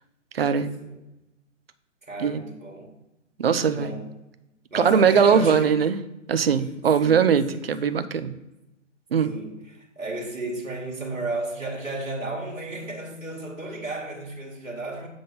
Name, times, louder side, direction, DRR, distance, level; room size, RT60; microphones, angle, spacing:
voice 1, 0.3-0.8 2.2-2.4 3.4-3.9 4.7-6.0 6.3-8.3 9.1-9.3, right 6 dB, 50° right, 0.7 m, -21 dB
voice 2, 2.0-3.0 3.5-4.1 4.7-5.8 7.0-8.0 9.2-15.1, right 2 dB, 90° right, 2.0 m, -33 dB
7.9 x 3.8 x 5.4 m
figure-of-eight pair, 135°, 38 cm